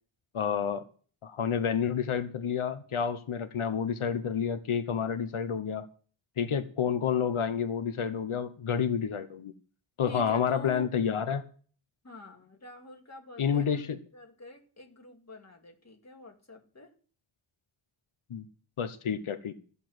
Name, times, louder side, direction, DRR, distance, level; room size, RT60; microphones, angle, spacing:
voice 1, 0.3-0.8 1.2-5.9 6.4-9.5 10.0-11.4 13.4-14.0 18.3-18.5 18.8-19.6, left 7 dB, 85° left, 9 dB, 1.0 m, -29 dB
voice 2, 10.1-10.9 12.0-16.9, left 1 dB, 35° left, 2 dB, 2.3 m, -47 dB
13.5 x 7.1 x 7.8 m, 0.43 s
wide cardioid pair, 110°, 48 cm